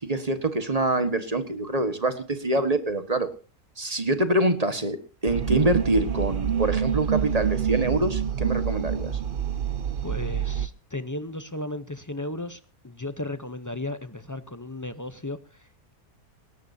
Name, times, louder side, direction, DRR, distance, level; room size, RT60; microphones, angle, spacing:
voice 1, 0.0-3.3 3.8-5.0 5.2-9.2, right 2 dB, 25° right, 1.5 m, -25 dB
sound 1, 5.3-10.7, right 8 dB, 45° right, 0.9 m, -26 dB
voice 2, 10.0-15.7, left 2 dB, 20° left, 0.4 m, -35 dB
20.0 x 18.0 x 2.8 m
omnidirectional pair, 1.6 m